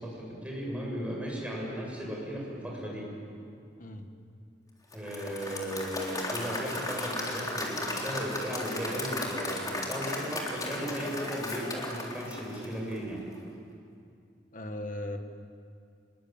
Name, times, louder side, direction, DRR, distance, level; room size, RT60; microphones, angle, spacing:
voice 1, 0.0-3.1 4.9-13.2, equal, 5° right, -3 dB, 7.3 m, -36 dB
Applause / Crowd, 4.9-13.1, left 1 dB, 20° left, 3.7 m, -35 dB
voice 2, 14.5-15.2, left 1 dB, 45° left, 5 dB, 2.0 m, -37 dB
26.0 x 21.5 x 9.1 m, 2.4 s
head